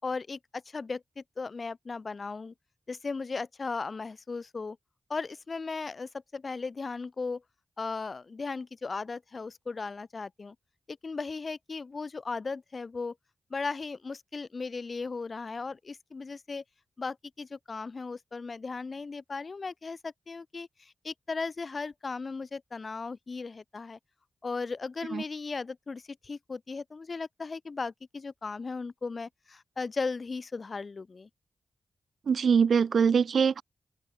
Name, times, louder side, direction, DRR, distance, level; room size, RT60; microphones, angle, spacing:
voice 1, 0.0-2.5 2.9-4.8 5.1-7.4 7.8-10.5 10.9-13.1 13.5-16.6 17.0-24.0 24.4-31.3, left 4 dB, 50° left, 4.7 m, -37 dB
voice 2, 32.3-33.6, right 6 dB, 80° right, 5.7 m, -23 dB
open air
wide cardioid pair, 80°, 0 cm